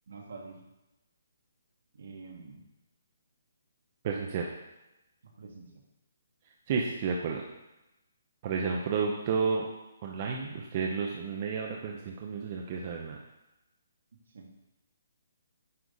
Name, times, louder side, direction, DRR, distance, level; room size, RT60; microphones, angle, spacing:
voice 1, 0.1-0.6 1.9-2.6 5.4-5.8 14.3-14.5, right 4 dB, 65° right, 0 dB, 1.7 m, -46 dB
voice 2, 4.0-4.5 6.7-7.4 8.4-9.7 10.0-13.2, right 5 dB, 35° right, 0 dB, 0.7 m, -31 dB
9.6 x 3.9 x 3.9 m, 0.97 s
hypercardioid pair, 165°, 0 cm